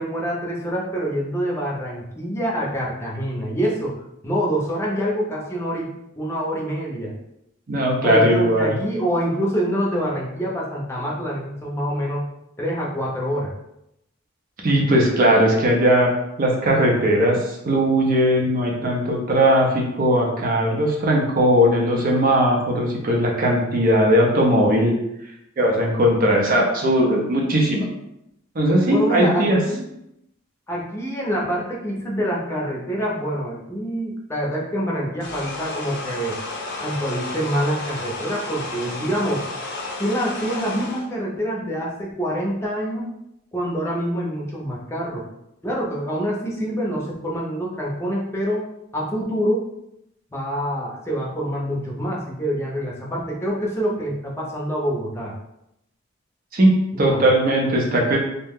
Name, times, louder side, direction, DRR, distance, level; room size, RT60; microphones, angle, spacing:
voice 1, 0.0-3.9 4.2-7.1 8.0-12.2 12.6-13.5 28.9-29.8 30.7-36.4 36.8-39.5 40.0-43.1 43.5-45.2 45.6-48.7 48.9-49.6 50.3-55.3 56.9-57.2, equal, 10° left, -4 dB, 0.6 m, -26 dB
voice 2, 7.7-8.8 14.6-16.1 16.4-24.9 25.6-27.9 28.6-29.6 56.5-58.2, equal, 45° right, 0 dB, 0.5 m, -18 dB
sound 1, 35.2-41.1, left 2 dB, 55° left, 0.6 m, -32 dB
2.7 x 2.1 x 3.5 m, 0.82 s
head